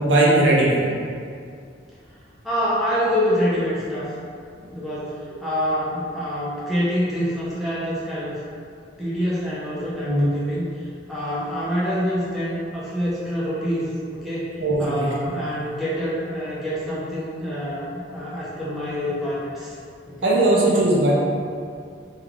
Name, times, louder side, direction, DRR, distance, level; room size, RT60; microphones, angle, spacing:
voice 1, 0.0-0.8 5.3-5.5 10.1-10.2 14.6-15.1 20.2-21.1, right 2 dB, 75° right, -5 dB, 0.6 m, -18 dB
voice 2, 2.4-4.1 4.7-8.4 9.0-19.7 20.1-20.3, equal, ahead, -10 dB, 0.5 m, -26 dB
2.3 x 2.3 x 3.3 m, 2.3 s
head